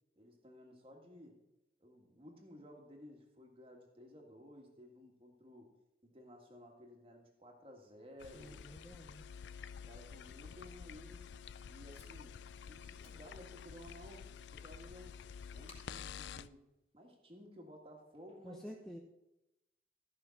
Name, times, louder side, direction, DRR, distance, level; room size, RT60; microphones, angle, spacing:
voice 1, 0.2-1.4 1.8-5.7 6.0-8.7 9.7-11.3 11.7-12.4 12.7-15.2 15.5-16.6 16.9-18.7, equal, 30° right, 2 dB, 1.8 m, -56 dB
sound 1, 8.2-16.5, left 7 dB, 85° left, 0.4 m, -50 dB
voice 2, 8.3-9.2 18.4-19.0, equal, ahead, -1 dB, 0.8 m, -50 dB
Packing tape duct tape, 15.0-17.4, left 3 dB, 35° left, 2.2 m, -67 dB
13.5 x 5.7 x 5.8 m, 0.91 s
head